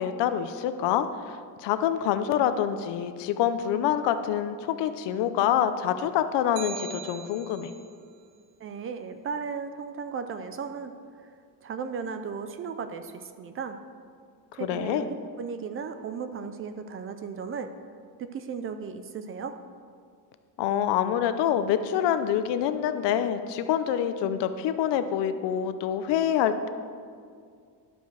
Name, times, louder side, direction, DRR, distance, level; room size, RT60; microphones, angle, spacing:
voice 1, 0.0-7.7 14.6-15.1 20.6-26.7, left 9 dB, 80° left, 10 dB, 0.7 m, -26 dB
sound 1, 6.6-7.9, right 7 dB, 85° right, 0.8 m, -40 dB
voice 2, 8.6-10.9 11.6-13.8 14.6-17.7 18.2-19.6, right 6 dB, 35° right, 9 dB, 0.4 m, -35 dB
11.5 x 5.2 x 6.4 m, 2.2 s
cardioid pair, 175°, 41 cm